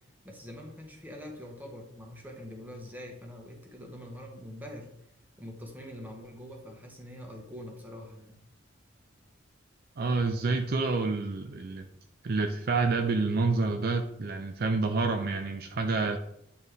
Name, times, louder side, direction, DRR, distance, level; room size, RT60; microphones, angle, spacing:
voice 1, 0.2-4.9 5.4-8.4, left 1 dB, 10° right, 0 dB, 1.3 m, -44 dB
voice 2, 10.0-11.9 12.2-16.2, right 3 dB, 50° right, 6 dB, 0.5 m, -28 dB
9.1 x 4.2 x 3.4 m, 0.77 s
head